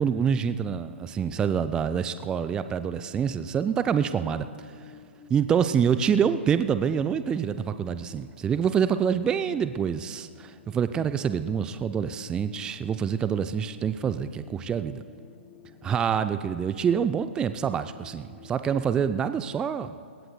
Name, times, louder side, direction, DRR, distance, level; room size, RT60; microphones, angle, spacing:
voice 1, 0.0-4.5 5.3-15.0 15.8-19.9, right 7 dB, 10° right, 11 dB, 0.3 m, -26 dB
sound 1, 1.0-18.6, left 7 dB, 25° left, 0.8 m, -53 dB
22.5 x 19.5 x 2.3 m, 2.2 s
figure-of-eight pair, 120°, 7 cm